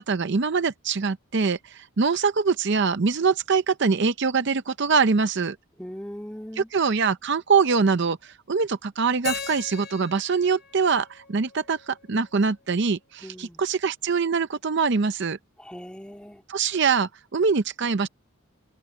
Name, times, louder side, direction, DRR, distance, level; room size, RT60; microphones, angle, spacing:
voice 1, 0.0-5.6 6.6-15.4 16.5-18.1, right 5 dB, 50° right, 0.6 m, -23 dB
voice 2, 5.8-6.7 13.2-13.6 15.6-16.4, equal, 5° left, 2.2 m, -39 dB
Keyboard (musical), 9.2-12.2, left 6 dB, 45° left, 5.7 m, -38 dB
head